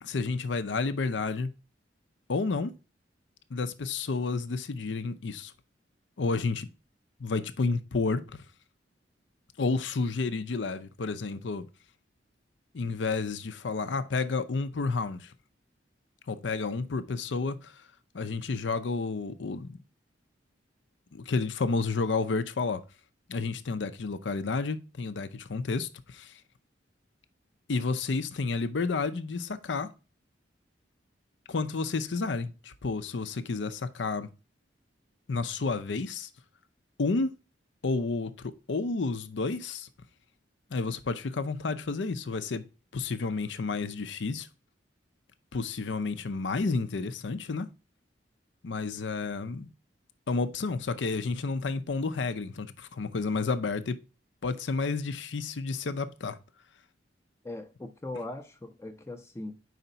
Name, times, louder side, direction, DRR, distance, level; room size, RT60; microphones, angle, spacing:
voice 1, 0.0-1.5 2.3-2.7 3.5-5.5 6.2-6.7 7.2-8.4 9.6-11.7 12.7-15.3 16.3-17.7 18.1-19.8 21.1-22.8 23.3-26.3 27.7-29.9 31.5-34.3 35.3-36.3 37.0-37.3 37.8-39.9 40.7-42.6 42.9-44.5 45.5-47.7 48.6-49.7 50.3-54.0 54.4-56.4, left 4 dB, 80° left, 0.6 m, -31 dB
voice 2, 57.4-59.7, left 2 dB, 15° left, 0.4 m, -40 dB
5.0 x 4.0 x 5.5 m
head